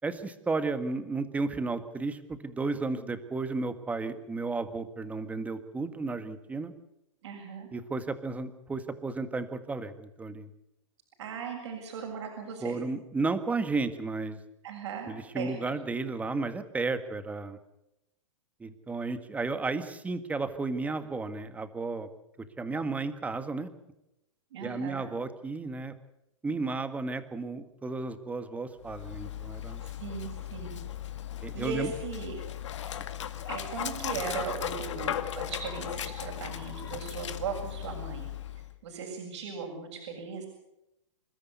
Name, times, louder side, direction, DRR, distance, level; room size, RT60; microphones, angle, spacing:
voice 1, 0.0-6.7 7.7-10.5 12.6-14.4 15.0-17.6 18.6-22.1 22.6-23.7 24.6-25.9 26.4-29.8 31.4-31.9, right 3 dB, 10° right, 10 dB, 1.8 m, -33 dB
voice 2, 7.2-7.7 11.2-12.8 14.6-15.6 24.5-25.1 29.8-30.8 31.5-32.4 33.5-38.3 38.8-40.5, right 6 dB, 60° right, 1 dB, 7.2 m, -38 dB
Dog, 28.8-38.7, left 10 dB, 65° left, 2.1 m, -37 dB
27.5 x 13.5 x 8.3 m, 0.87 s
hypercardioid pair, 130°, 16 cm